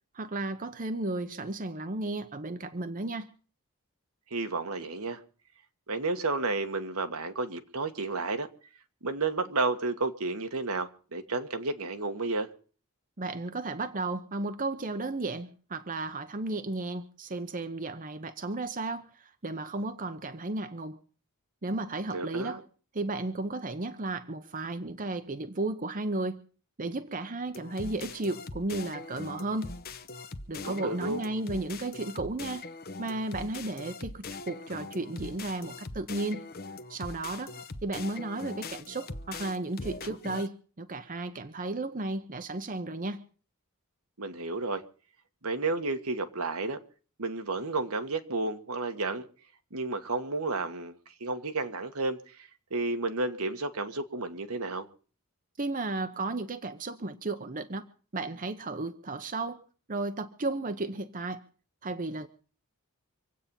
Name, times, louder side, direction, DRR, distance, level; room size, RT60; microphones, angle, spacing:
voice 1, 0.1-3.3 13.2-21.0 21.6-22.6 22.9-26.4 26.8-29.8 30.5-32.7 33.0-36.4 36.9-43.2 55.6-57.8 58.1-59.6 59.9-61.4 61.8-62.3, right 2 dB, 35° right, 0.9 m, -34 dB
voice 2, 4.3-5.2 5.9-8.5 9.0-12.5 22.1-22.6 30.6-31.2 44.2-44.8 45.4-46.8 47.2-49.2 49.7-54.9, right 3 dB, 75° right, 1.5 m, -32 dB
sound 1, 27.5-40.5, left 3 dB, 45° left, 1.0 m, -41 dB
26.0 x 8.6 x 5.4 m
head